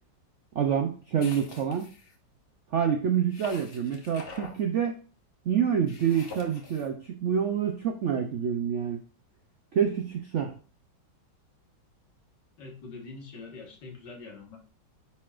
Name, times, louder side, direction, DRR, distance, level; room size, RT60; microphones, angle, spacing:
voice 1, 0.6-1.9 2.7-5.0 5.5-9.0 9.7-10.5, right 8 dB, 65° right, 4 dB, 0.7 m, -27 dB
sound 1, 1.2-2.1 3.3-4.6 5.9-6.9, left 3 dB, 35° left, 1.1 m, -45 dB
voice 2, 12.6-14.6, left 3 dB, 70° left, 1 dB, 2.2 m, -44 dB
9.3 x 4.4 x 2.4 m, 0.39 s
omnidirectional pair, 1.9 m